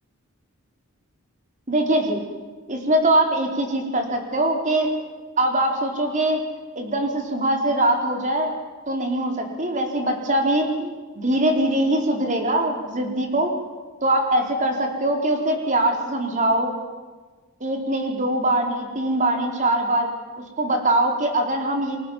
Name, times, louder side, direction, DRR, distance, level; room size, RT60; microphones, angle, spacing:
voice 1, 1.7-2.2 2.7-4.9 5.4-6.4 6.8-8.5 8.9-13.5 14.0-16.7 17.6-20.1 20.6-22.0, right 1 dB, 35° right, 3 dB, 4.5 m, -22 dB
30.0 x 23.0 x 7.5 m, 1.3 s
head